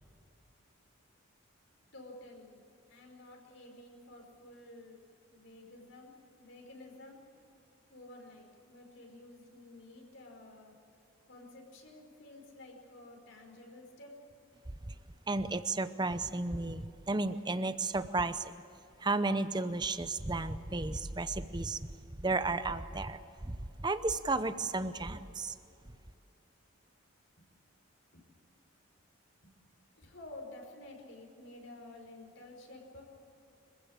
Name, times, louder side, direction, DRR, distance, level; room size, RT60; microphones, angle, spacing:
voice 1, 1.9-2.6 2.9-7.2 7.9-10.7 11.3-14.1 27.4-27.5 29.4-29.5 29.9-33.0, left 2 dB, 60° left, 1 dB, 5.1 m, -52 dB
voice 2, 15.3-18.5 19.0-21.9 22.2-25.5, right 3 dB, 20° right, 12 dB, 0.7 m, -33 dB
26.0 x 15.5 x 8.8 m, 2.8 s
head